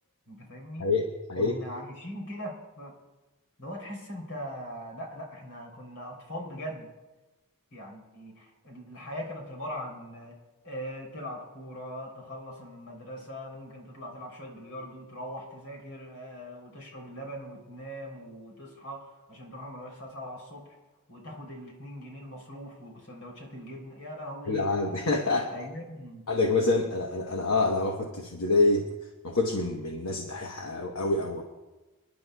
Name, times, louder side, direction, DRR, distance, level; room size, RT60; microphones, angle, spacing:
voice 1, 0.3-0.9 1.3-2.9 3.6-6.9 7.7-10.4 10.6-20.8 21.1-24.7 25.5-26.2, equal, 85° left, 1 dB, 3.4 m, -41 dB
voice 2, 0.8-1.5 24.5-25.5 26.3-28.9 29.2-31.4, left 3 dB, 65° left, 1 dB, 1.1 m, -26 dB
27.5 x 10.5 x 2.3 m, 1.1 s
head